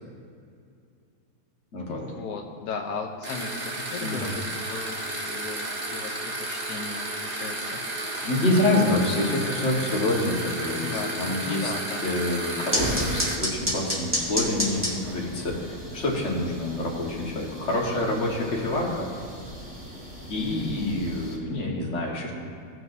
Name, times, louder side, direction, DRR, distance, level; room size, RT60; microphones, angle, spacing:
voice 1, 1.9-7.8 10.8-12.0, left 4 dB, 90° left, 2 dB, 1.3 m, -36 dB
sound 1, 3.2-13.4, right 2 dB, 30° right, 1.0 m, -33 dB
voice 2, 4.0-4.3 8.1-11.7 12.0-19.1 20.3-22.3, left 2 dB, 50° left, -3 dB, 1.8 m, -27 dB
Gas Stove, 12.7-21.4, equal, 10° right, 1.7 m, -32 dB
17.0 x 6.2 x 2.7 m, 2.4 s
omnidirectional pair, 1.6 m